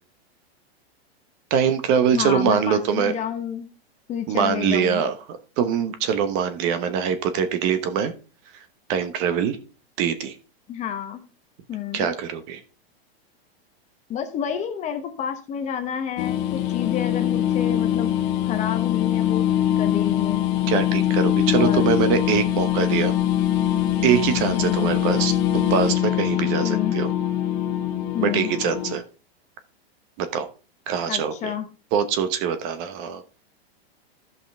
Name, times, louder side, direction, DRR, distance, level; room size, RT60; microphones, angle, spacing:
voice 1, 1.5-3.1 4.3-8.1 8.5-8.6 8.9-9.6 10.0-10.3 11.9-12.6 20.7-23.1 24.0-27.1 28.2-29.0 30.2-30.5 30.9-31.5 31.9-33.2, right 7 dB, 40° right, 10 dB, 1.0 m, -23 dB
voice 2, 2.1-3.7 4.1-5.0 10.7-11.2 11.7-12.1 14.1-18.1 18.4-20.4 21.5-21.8 24.5-24.9 26.6-27.0 28.1-28.5 31.1-31.7, left 9 dB, 20° left, 7 dB, 1.0 m, -30 dB
sound 1, 16.2-29.0, left 12 dB, 40° left, 1.4 m, -23 dB
14.5 x 5.5 x 3.4 m, 0.34 s
supercardioid pair, 150°, 31 cm